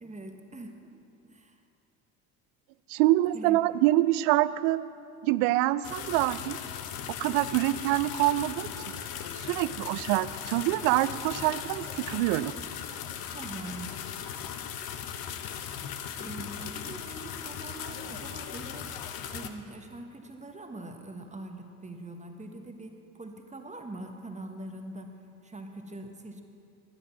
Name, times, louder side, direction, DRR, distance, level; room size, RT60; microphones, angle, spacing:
voice 1, 0.0-0.9 1.2-1.5 3.3-3.6 13.3-14.0 16.2-18.9 19.3-25.1 25.4-26.4, right 2 dB, 15° right, 4 dB, 1.4 m, -43 dB
voice 2, 2.9-4.8 5.2-6.6 7.2-8.7 9.4-12.5, right 16 dB, 70° right, 17 dB, 0.6 m, -25 dB
sound 1, 5.8-19.5, left 8 dB, 55° left, 1.0 m, -38 dB
13.0 x 10.0 x 6.0 m, 2.6 s
hypercardioid pair, 60°, 45 cm